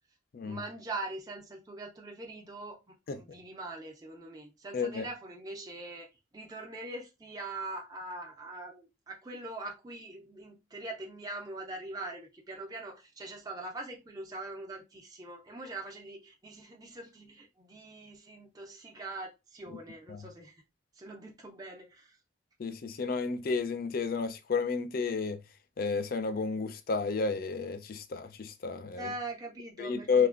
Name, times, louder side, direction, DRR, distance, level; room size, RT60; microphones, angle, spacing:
voice 1, 0.5-6.1 6.3-20.6 21.0-22.2 29.0-30.3, right 2 dB, 20° right, 0.4 m, -42 dB
voice 2, 4.7-5.0 19.7-19.8 20.1-20.3 22.6-25.4 25.8-29.1 29.8-30.3, left 5 dB, 45° left, 0.3 m, -31 dB
3.2 x 2.2 x 2.4 m
head